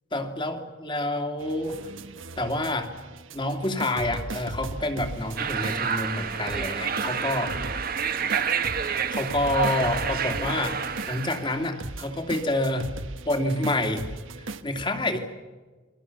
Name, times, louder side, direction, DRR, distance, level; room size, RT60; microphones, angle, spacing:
voice 1, 0.1-1.8 2.4-2.9 3.3-7.5 8.8-10.8 11.1-12.9 13.3-14.0 14.6-15.3, left 1 dB, 25° left, 5 dB, 2.5 m, -28 dB
sound 1, 1.4-14.6, right 2 dB, 70° right, 1.4 m, -38 dB
sound 2, 5.4-11.5, right 6 dB, 45° right, 1.4 m, -29 dB
29.5 x 22.5 x 7.1 m, 1.3 s
head